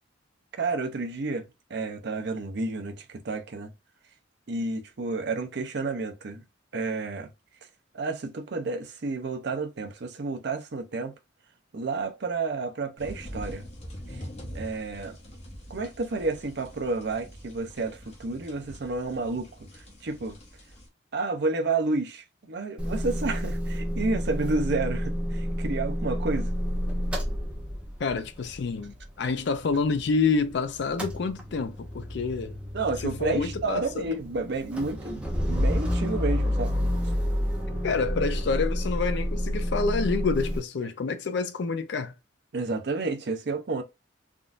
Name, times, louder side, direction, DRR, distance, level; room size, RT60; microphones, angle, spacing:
voice 1, 0.6-3.7 4.5-6.4 6.7-7.3 7.9-11.1 11.7-13.6 14.1-14.2 14.5-15.2 15.7-20.4 21.1-26.5 32.7-36.7 42.5-43.8, right 3 dB, 55° right, 0.5 m, -30 dB
sound 1, 13.0-20.9, equal, 35° left, 0.8 m, -44 dB
Motor vehicle (road) / Engine starting / Idling, 22.8-30.5 30.8-40.6, equal, 5° right, 0.6 m, -30 dB
voice 2, 28.0-32.6 33.0-34.0 37.8-42.1, left 4 dB, 55° left, 0.4 m, -28 dB
3.6 x 2.5 x 2.4 m
head